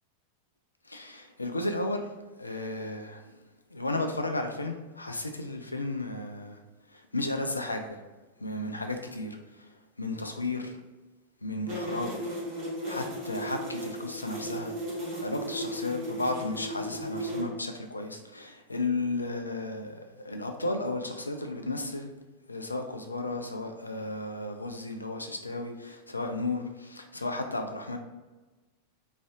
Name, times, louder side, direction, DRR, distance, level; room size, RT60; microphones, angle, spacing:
voice 1, 0.9-2.0 2.4-3.2 3.7-6.6 6.9-8.0 8.4-9.7 10.0-10.8 11.4-12.2 12.9-14.7 15.2-22.1 22.5-28.0, left 2 dB, 80° left, 5 dB, 0.3 m, -34 dB
sound 1, 11.7-17.4, equal, 45° right, 1.1 m, -36 dB
3.1 x 2.5 x 2.3 m, 1.2 s
figure-of-eight pair, 90°, 0 cm